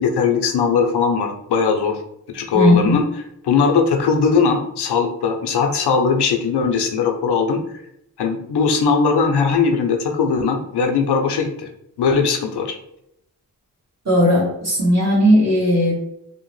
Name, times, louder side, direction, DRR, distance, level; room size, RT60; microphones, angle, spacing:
voice 1, 0.0-2.0 2.3-3.0 3.4-7.6 8.2-11.7 12.0-12.8, left 5 dB, 75° left, 4 dB, 0.6 m, -19 dB
voice 2, 2.5-3.0 14.0-16.0, equal, 40° right, -6 dB, 1.2 m, -16 dB
2.8 x 2.0 x 3.0 m, 0.77 s
cardioid pair, 50°, 40 cm